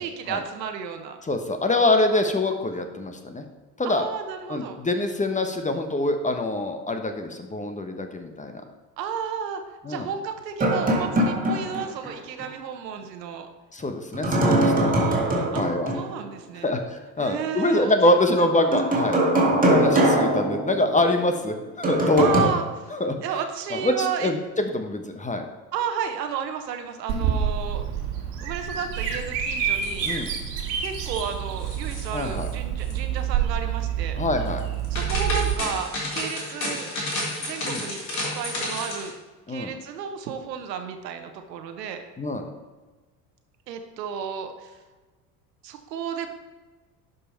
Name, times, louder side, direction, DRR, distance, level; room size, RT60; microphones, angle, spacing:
voice 1, 0.0-1.2 3.8-4.8 9.0-13.5 14.8-15.6 15.9-16.7 17.2-18.7 22.2-22.6 23.2-24.3 25.7-27.8 28.4-30.1 30.8-34.2 34.9-36.9 37.4-39.1 39.5-42.0 43.7-44.8 45.6-46.3, right 7 dB, 75° right, 7 dB, 1.2 m, -32 dB
voice 2, 1.3-3.4 3.8-4.0 4.5-8.6 9.8-10.1 13.7-14.9 15.5-15.9 16.6-22.5 22.9-23.1 23.7-25.4 30.0-30.3 32.1-32.5 34.2-34.6 37.6-37.8 39.5-39.7 42.2-42.5, left 2 dB, 15° left, 6 dB, 1.0 m, -25 dB
sound 1, 10.6-12.1 12.4-12.5 14.1-16.1 18.7-21.2 21.8-22.4, right 1 dB, 15° right, 2.3 m, -22 dB
Bird vocalization bird call bird song, 27.1-35.5, right 8 dB, 55° right, 1.8 m, -28 dB
sound 2, 29.6-30.6 30.9-31.3 31.6-32.5 32.8-32.9 34.6-39.1, left 1 dB, 85° left, 2.4 m, -32 dB
11.5 x 5.3 x 4.5 m, 1.3 s
hypercardioid pair, 70°, 50 cm